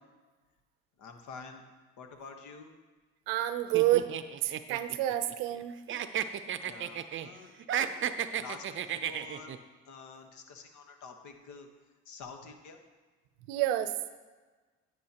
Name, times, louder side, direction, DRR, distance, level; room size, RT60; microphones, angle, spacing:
voice 1, 1.0-1.6 2.0-2.7 6.6-8.0 8.4-9.5 9.9-11.7 12.0-12.8, left 5 dB, 70° left, 5 dB, 1.3 m, -48 dB
voice 2, 3.3-4.1 4.4-5.7 13.5-13.9, right 14 dB, 85° right, 11 dB, 0.6 m, -28 dB
sound 1, 3.7-5.6 5.9-7.3 7.6-9.6, right 9 dB, 40° right, 0.6 m, -33 dB
9.7 x 9.2 x 2.9 m, 1.3 s
supercardioid pair, 85°, 30 cm